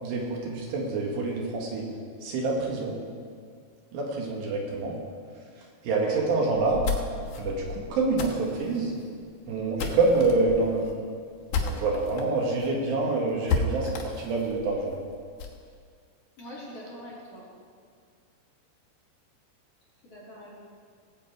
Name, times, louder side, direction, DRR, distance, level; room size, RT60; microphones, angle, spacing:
voice 1, 0.0-1.8 2.2-3.0 3.9-5.0 5.8-6.8 7.4-8.9 9.5-10.8 11.5-15.0, right 3 dB, 75° right, -1 dB, 3.7 m, -26 dB
sound 1, 6.5-12.2 12.6-12.7 13.0-13.1 13.5-15.6, left 5 dB, 65° left, 2.0 m, -33 dB
voice 2, 16.4-17.4 20.1-20.6, equal, 35° left, -9 dB, 4.0 m, -43 dB
19.0 x 8.3 x 4.7 m, 2.1 s
omnidirectional pair, 5.1 m